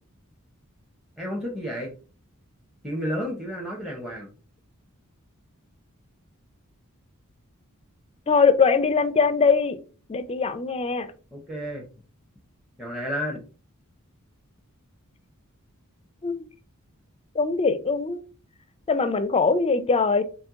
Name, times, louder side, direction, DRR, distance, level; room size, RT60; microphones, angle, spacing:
voice 1, 1.2-1.9 2.8-4.3 11.3-11.8 12.8-13.4, equal, ahead, 0.7 m, -31 dB
voice 2, 8.3-9.8 10.1-11.1 16.2-16.4 17.4-18.2 18.9-20.2, left 4 dB, 25° left, 0.4 m, -21 dB
4.4 x 3.0 x 3.6 m
head